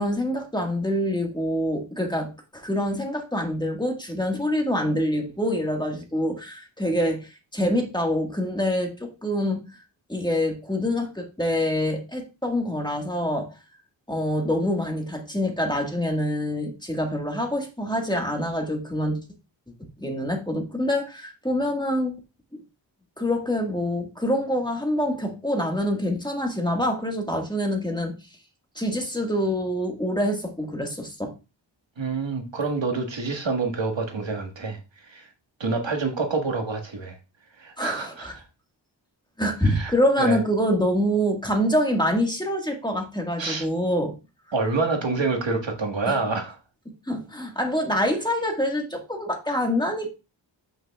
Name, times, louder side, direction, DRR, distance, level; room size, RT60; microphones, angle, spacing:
voice 1, 0.0-9.6 10.1-13.5 14.1-19.2 20.0-22.1 22.5-22.6 23.2-28.1 28.7-31.3 37.8-38.3 39.4-44.1 46.1-46.2 47.1-50.1, equal, 10° left, 1.6 m, -26 dB
voice 2, 32.0-34.8 35.1-35.3 35.6-37.2 37.6-38.4 39.6-39.9 40.2-40.4 43.4-43.7 44.5-46.6, right 3 dB, 70° right, 1.6 m, -27 dB
7.9 x 6.1 x 2.3 m
wide cardioid pair, 65°, 46 cm